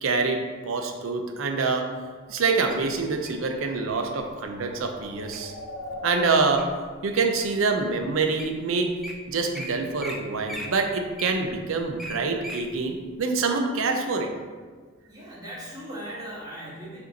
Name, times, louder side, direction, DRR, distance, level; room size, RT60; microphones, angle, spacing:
voice 1, 0.0-2.0 2.3-5.5 6.0-6.7 7.0-8.9 9.3-14.3, right 4 dB, 85° right, 4 dB, 0.5 m, -26 dB
sound 1, 2.7-8.5, left 2 dB, 65° left, 0.6 m, -43 dB
Wild animals, 2.7-3.5 4.2-4.4 4.9-5.4 5.9-6.9 7.4-7.5 8.1-8.2 8.4-8.6 8.8-9.1 9.5-9.7 10.0-10.2 10.5-12.6 13.1-13.2, equal, ahead, 0.3 m, -38 dB
voice 2, 15.1-17.0, equal, 20° right, -7 dB, 1.3 m, -38 dB
5.1 x 2.7 x 4.0 m, 1.5 s
head